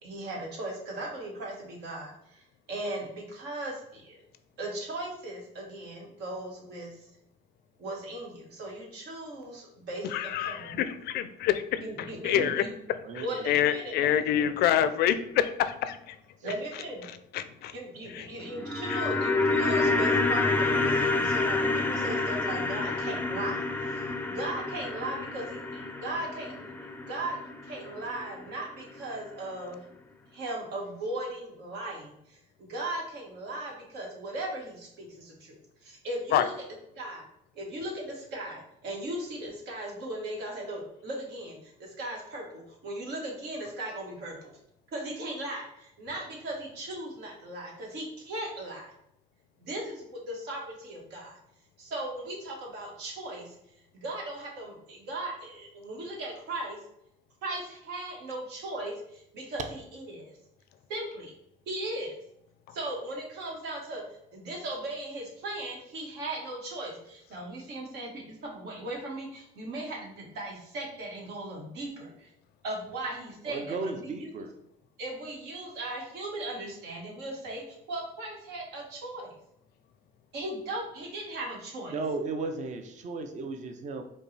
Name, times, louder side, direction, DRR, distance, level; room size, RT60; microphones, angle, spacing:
voice 1, 0.0-4.2 4.6-7.1 7.8-10.8 11.8-12.7 13.2-14.5 16.4-17.1 17.7-26.7 27.1-29.8 30.3-36.5 37.0-37.2 37.5-44.5 44.9-48.9 49.6-51.4 51.8-53.6 53.9-56.8 57.4-60.3 60.9-61.3 61.7-62.1 62.7-72.3 72.6-74.4 75.0-79.3 80.3-81.9, right 1 dB, 80° right, -1 dB, 1.3 m, -38 dB
voice 2, 10.1-12.6 13.1-16.2 17.3-17.7 18.1-18.3 18.9-19.0 36.3-36.5, left 10 dB, 70° left, 11 dB, 0.4 m, -27 dB
voice 3, 12.2-12.6 13.0-13.4 73.5-74.5 81.9-84.0, right 3 dB, 45° right, 6 dB, 0.5 m, -35 dB
sound 1, 18.4-28.7 28.9-29.0, left 3 dB, 10° left, 0.4 m, -28 dB
5.2 x 2.3 x 3.2 m, 0.76 s
cardioid pair, 110°, 17 cm